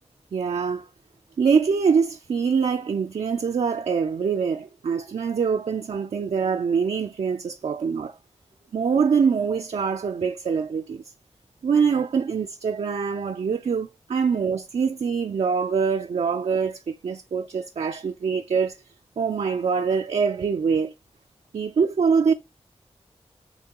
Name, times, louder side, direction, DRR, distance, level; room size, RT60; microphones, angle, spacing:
voice 1, 0.3-0.8 1.4-8.1 8.7-11.0 11.6-18.7 19.2-20.9 21.5-22.3, right 6 dB, 65° right, 0.4 m, -24 dB
6.6 x 2.2 x 2.9 m
wide cardioid pair, 65°, 12 cm